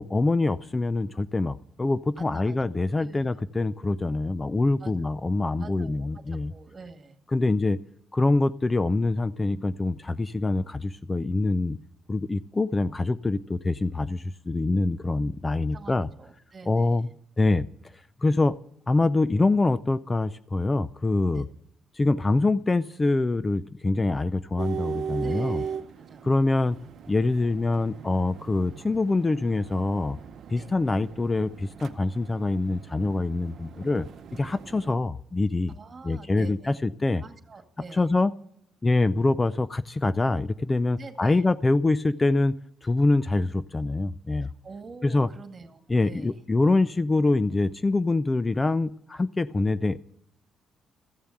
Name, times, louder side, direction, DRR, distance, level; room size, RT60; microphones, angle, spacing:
voice 1, 0.0-6.5 7.3-7.8 8.1-11.8 12.1-16.1 16.7-17.1 17.4-17.7 18.2-18.5 18.9-21.5 21.9-25.6 26.2-26.8 27.1-30.2 30.5-35.7 36.0-37.2 37.9-38.3 38.8-42.5 42.8-44.5 45.0-45.3 45.9-50.1, left 2 dB, 20° left, 15 dB, 0.5 m, -25 dB
voice 2, 2.2-2.6 3.0-3.4 4.8-4.9 5.6-6.2 6.5-7.2 15.7-17.1 21.3-21.5 25.2-25.8 26.1-26.3 30.6-30.7 35.7-36.7 37.2-38.1 41.0-41.4 44.4-46.4, right 4 dB, 35° right, 6 dB, 1.9 m, -45 dB
sound 1, 24.6-34.9, right 7 dB, 65° right, 0.8 m, -38 dB
14.5 x 6.9 x 9.0 m, 0.72 s
cardioid pair, 90°, 0 cm